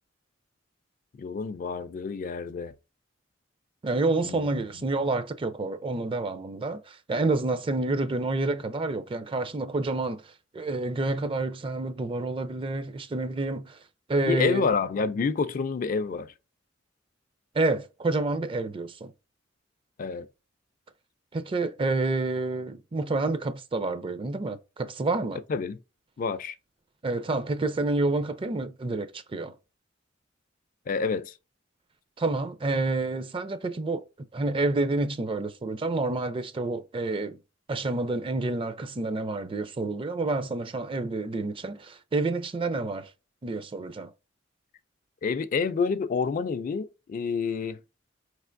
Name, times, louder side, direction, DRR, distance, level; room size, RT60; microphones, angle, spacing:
voice 1, 1.2-2.7 4.2-4.5 14.3-16.3 20.0-20.3 25.5-25.8 26.2-26.5 30.9-31.3 45.2-47.8, left 5 dB, 45° left, 0.3 m, -28 dB
voice 2, 3.8-13.8 14.1-14.7 17.5-19.1 21.3-25.4 27.0-29.5 32.2-34.0 34.3-37.4 37.7-43.1 43.4-44.1, right 2 dB, 30° right, 0.4 m, -28 dB
5.0 x 3.3 x 2.5 m
head